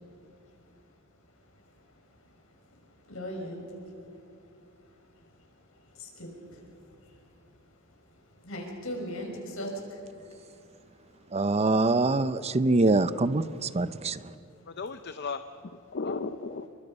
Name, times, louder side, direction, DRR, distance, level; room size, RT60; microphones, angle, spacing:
voice 1, 3.1-3.7 5.2-5.3 5.9-6.7 7.0-7.2 8.4-10.0, equal, 80° left, 0 dB, 6.0 m, -38 dB
voice 2, 11.3-14.2, right 2 dB, 30° right, 14 dB, 0.5 m, -24 dB
voice 3, 14.7-16.7, left 4 dB, 55° left, 9 dB, 0.7 m, -35 dB
29.0 x 23.5 x 5.4 m, 2.5 s
head